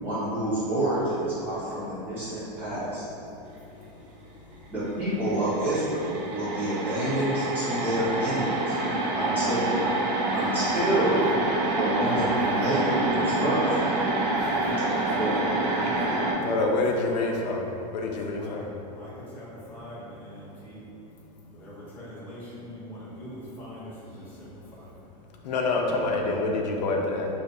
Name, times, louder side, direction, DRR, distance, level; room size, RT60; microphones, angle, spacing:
voice 1, 0.0-3.0 4.7-8.8 9.2-9.8 10.3-11.3 11.8-13.7 15.2-15.3, right 1 dB, 10° right, -12 dB, 0.8 m, -28 dB
sound 1, 5.0-5.1 5.3-16.3, right 2 dB, 75° right, 0.5 m, -27 dB
voice 2, 9.0-9.6 14.3-17.3 18.2-18.6 18.9-20.8 21.5-24.9, equal, 10° left, -8 dB, 0.3 m, -42 dB
voice 3, 16.4-17.6 17.9-18.7 25.4-27.3, left 3 dB, 90° left, 1 dB, 0.5 m, -26 dB
2.5 x 2.4 x 3.8 m, 2.7 s
supercardioid pair, 175°, 21 cm